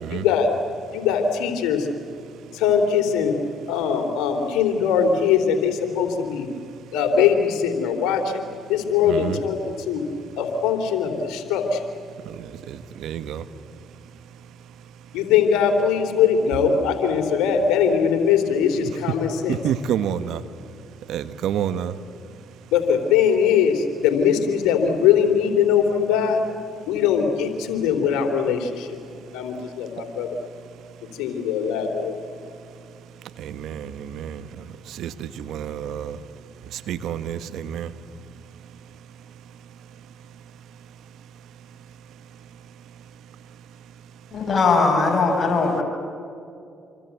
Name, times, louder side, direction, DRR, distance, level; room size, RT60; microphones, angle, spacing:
voice 1, 0.1-0.5 0.9-1.9 2.5-3.3 3.7-6.5 6.9-8.4 8.7-10.0 10.4-11.8 15.1-19.6 22.7-26.4 26.9-29.0 29.3-30.3 31.2-32.2, left 7 dB, 80° left, 3.2 m, -21 dB
voice 2, 9.0-9.4 12.7-13.4 19.5-20.4 21.1-21.9 33.4-34.4 35.0-36.2 36.9-37.9, right 9 dB, 75° right, 1.2 m, -28 dB
voice 3, 44.3-45.8, left 4 dB, 50° left, 6.0 m, -19 dB
28.0 x 24.0 x 8.3 m
hypercardioid pair, 55°, 0 cm